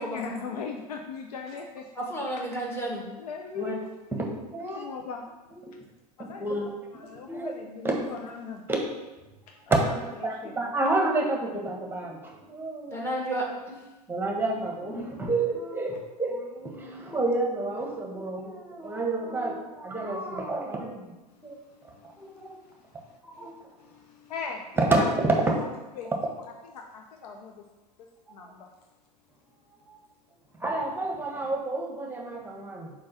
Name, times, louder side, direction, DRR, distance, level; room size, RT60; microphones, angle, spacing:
voice 1, 0.0-1.9 3.2-4.1 4.6-5.3 6.2-6.6 6.9-8.7 9.5-10.5 18.9-19.0 21.7-22.5 23.0-23.5 23.8-24.7 25.0-25.1 25.6-25.7 26.0-26.1 26.7-27.6 28.3-28.7, left 5 dB, 70° left, 3 dB, 0.7 m, -39 dB
voice 2, 2.0-3.1 12.9-13.8, right 1 dB, 10° left, -3 dB, 2.1 m, -31 dB
voice 3, 4.1-4.8 5.6-5.7 6.2-7.5 7.8-8.0 8.7-8.8 9.7-9.8 10.2-13.1 14.1-21.0 21.4-21.6 22.2-22.6 23.2-23.5 24.8-25.6 26.0-26.2 28.3-28.4 30.6-32.9, right 2 dB, 10° right, 0 dB, 1.4 m, -29 dB
5.3 x 4.6 x 5.7 m, 1.1 s
figure-of-eight pair, 85°, 21 cm